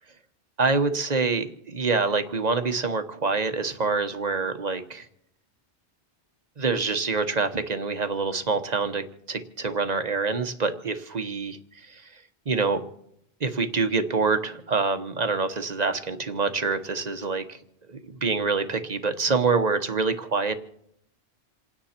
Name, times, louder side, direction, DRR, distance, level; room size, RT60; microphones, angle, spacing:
voice 1, 0.6-5.0 6.6-11.6 11.9-12.0 12.5-12.8 13.4-17.6 17.9-20.5, right 4 dB, 40° right, 8 dB, 1.1 m, -26 dB
28.5 x 9.9 x 4.4 m, 0.74 s
omnidirectional pair, 1.1 m